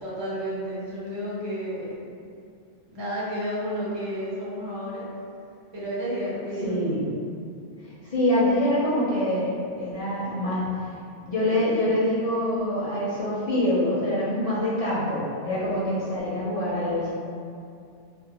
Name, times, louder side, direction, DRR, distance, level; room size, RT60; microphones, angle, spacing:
voice 1, 0.0-2.1 2.9-5.1 5.7-6.8, equal, 30° right, -8 dB, 0.5 m, -31 dB
voice 2, 6.6-7.0 8.1-10.7 11.2-17.1, left 1 dB, 55° left, -9 dB, 0.4 m, -25 dB
2.4 x 2.1 x 2.8 m, 2.5 s
omnidirectional pair, 1.2 m